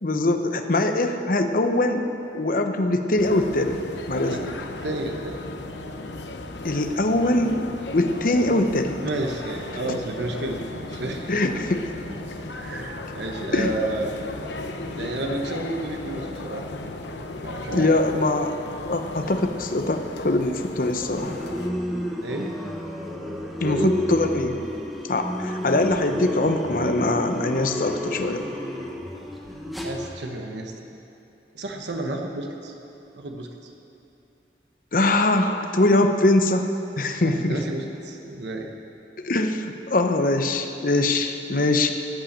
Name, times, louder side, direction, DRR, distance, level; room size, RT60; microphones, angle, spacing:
voice 1, 0.0-2.1 2.3-3.8 4.1-4.5 6.6-8.9 9.9-10.0 11.3-11.9 13.5-13.7 17.7-21.4 23.6-24.6 25.1-28.4 34.9-36.7 37.0-37.6 39.2-41.9, left 2 dB, 50° left, 6 dB, 0.8 m, -22 dB
sound 1, 3.2-21.7, left 2 dB, 85° left, 0.9 m, -36 dB
voice 2, 4.8-5.4 9.0-11.3 12.5-14.2 14.9-16.6 17.4-17.9 22.2-22.6 23.6-23.9 29.8-30.7 31.5-32.7 33.2-33.5 37.2-38.7, right 2 dB, 80° right, 2 dB, 1.2 m, -31 dB
sound 2, 21.2-30.1, equal, ahead, 1.1 m, -31 dB
14.0 x 8.8 x 7.4 m, 2.8 s
head